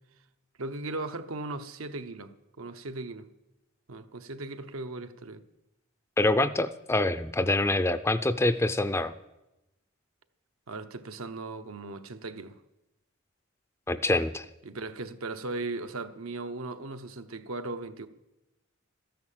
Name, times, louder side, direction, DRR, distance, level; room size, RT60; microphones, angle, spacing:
voice 1, 0.6-3.3 3.9-5.4 10.7-12.6 14.6-18.1, right 2 dB, 80° right, 0.9 m, -37 dB
voice 2, 6.2-9.1 13.9-14.5, left 2 dB, 10° left, 0.4 m, -25 dB
13.5 x 10.5 x 7.4 m
head